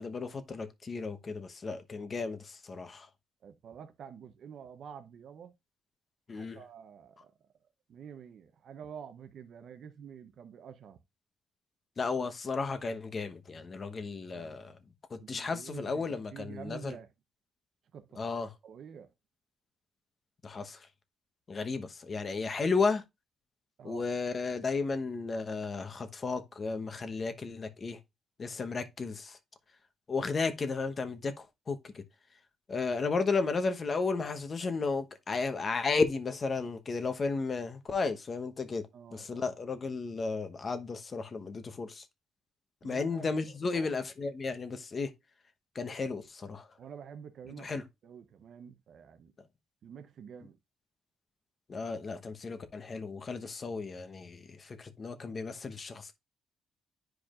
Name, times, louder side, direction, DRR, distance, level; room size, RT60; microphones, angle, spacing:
voice 1, 0.0-3.1 6.3-6.6 12.0-14.8 15.1-17.0 18.2-18.5 20.4-20.9 21.5-23.0 23.8-28.0 28.4-29.4 30.1-32.0 32.7-38.8 39.1-42.0 42.8-45.1 45.7-46.7 47.6-47.8 51.7-56.1, left 4 dB, 40° left, 1.0 m, -34 dB
voice 2, 3.4-5.5 6.3-7.3 7.9-11.0 14.3-14.7 15.2-17.1 17.9-18.2 18.6-19.1 23.8-24.0 38.9-39.5 42.8-43.3 43.7-44.0 46.8-47.8 48.0-49.3 49.8-50.6, right 7 dB, 65° right, 0.8 m, -48 dB
10.5 x 4.8 x 2.5 m
cardioid pair, 90°, 0 cm